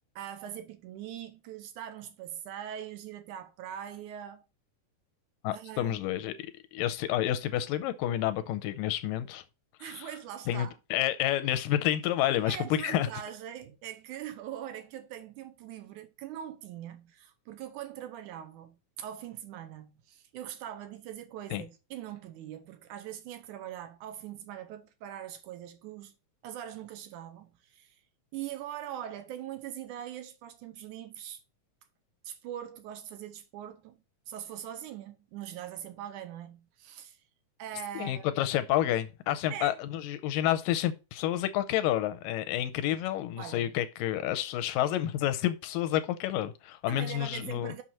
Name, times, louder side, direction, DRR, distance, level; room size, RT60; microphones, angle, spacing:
voice 1, 0.2-4.4 5.5-6.0 9.8-10.8 12.5-26.1 26.4-28.0 28.3-31.4 32.2-34.0 34.3-37.2 37.6-38.3 39.5-39.8 43.4-43.7 46.9-47.8, right 10 dB, 75° right, 1.9 m, -42 dB
voice 2, 5.4-9.4 9.8-10.1 10.5-13.1 21.5-21.6 38.0-47.7, left 12 dB, 80° left, 2.1 m, -29 dB
6.2 x 6.2 x 4.2 m
omnidirectional pair, 4.3 m